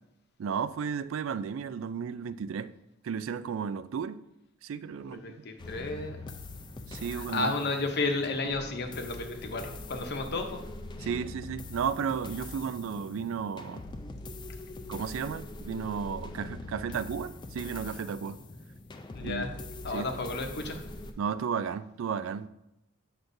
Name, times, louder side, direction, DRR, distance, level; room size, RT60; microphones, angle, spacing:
voice 1, 0.4-2.7 3.0-4.2 4.6-5.5 6.9-7.5 11.0-13.8 14.9-18.4 19.2-19.5 19.9-20.3 21.2-22.5, right 6 dB, 65° right, 0.3 m, -34 dB
voice 2, 5.2-6.2 7.2-10.6 11.0-11.1 19.1-19.6 19.8-20.8, left 3 dB, 50° left, 0.8 m, -32 dB
sound 1, 5.6-21.1, left 2 dB, 20° left, 0.4 m, -43 dB
8.0 x 5.8 x 2.6 m
head